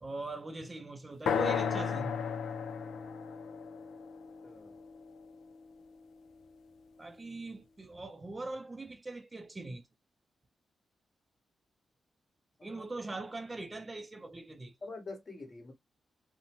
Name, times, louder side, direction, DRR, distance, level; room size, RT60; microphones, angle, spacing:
voice 1, 0.0-2.3 7.0-9.9 12.6-14.7, right 2 dB, 25° right, 0.4 m, -41 dB
sound 1, 1.3-5.2, left 7 dB, 85° left, 0.4 m, -34 dB
voice 2, 4.4-4.7 12.6-12.8 14.8-15.7, left 3 dB, 40° left, 1.2 m, -45 dB
2.6 x 2.0 x 2.8 m
cardioid pair, 90°, 0 cm